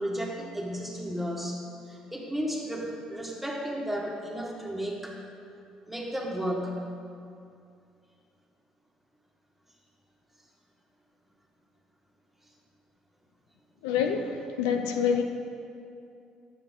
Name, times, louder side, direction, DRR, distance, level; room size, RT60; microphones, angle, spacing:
voice 1, 0.0-1.6 1.9-5.2 5.9-6.8, equal, 5° right, -2 dB, 1.7 m, -33 dB
voice 2, 13.8-15.2, left 7 dB, 85° left, 4 dB, 0.5 m, -27 dB
9.4 x 6.8 x 3.7 m, 2.5 s
hypercardioid pair, 55°, 2 cm